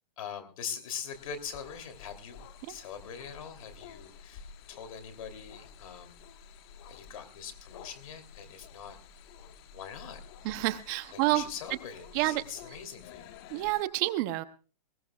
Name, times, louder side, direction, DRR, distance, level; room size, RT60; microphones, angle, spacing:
voice 1, 0.2-2.4 2.7-6.2 6.9-9.0 9.7-10.2 11.1-13.3, left 7 dB, 55° left, 8 dB, 2.9 m, -42 dB
sound 1, 1.1-13.8, left 6 dB, 35° left, 1.3 m, -51 dB
voice 2, 10.4-11.4 12.1-12.4 13.5-14.4, right 17 dB, 30° right, 13 dB, 0.7 m, -28 dB
20.0 x 19.0 x 2.3 m, 0.36 s
hypercardioid pair, 145°, 21 cm